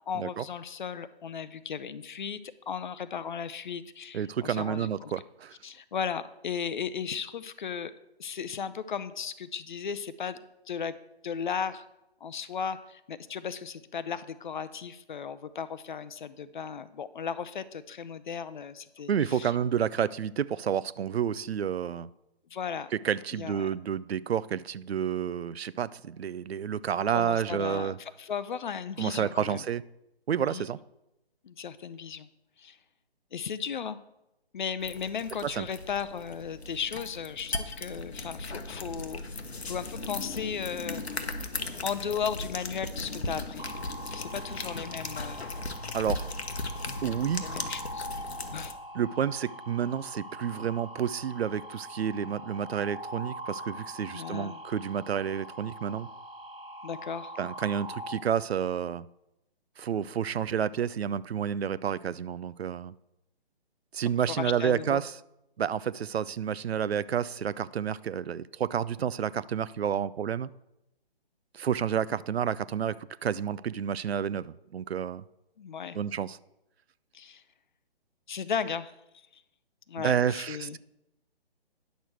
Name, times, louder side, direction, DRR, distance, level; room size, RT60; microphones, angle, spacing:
voice 1, 0.1-5.1 5.6-7.9 8.2-10.9 11.2-11.8 12.2-19.5 22.5-22.9 23.3-23.7 27.1-29.6 30.5-30.7 31.4-32.3 32.6-32.8 33.3-34.0 34.5-39.2 39.7-41.0 41.8-43.7 44.1-45.6 47.4-48.1 48.5-48.8 54.1-54.6 56.8-57.3 64.4-65.0 75.6-76.0 77.1-77.4 78.3-79.4 79.9-80.8, left 7 dB, 50° left, 0.6 m, -36 dB
voice 2, 4.1-5.6 19.1-22.1 22.9-28.0 29.0-29.8 30.3-30.8 35.4-35.6 45.9-46.3 47.0-47.5 48.9-56.1 57.4-59.1 59.8-62.9 63.9-65.2 65.6-70.5 71.5-75.2 75.9-76.4 80.0-80.8, right 8 dB, 80° right, 0.5 m, -30 dB
sound 1, 34.8-48.7, left 3 dB, 85° left, 1.1 m, -37 dB
sound 2, 43.6-58.1, right 1 dB, 60° right, 1.6 m, -43 dB
10.5 x 6.6 x 4.5 m
figure-of-eight pair, 145°, 31 cm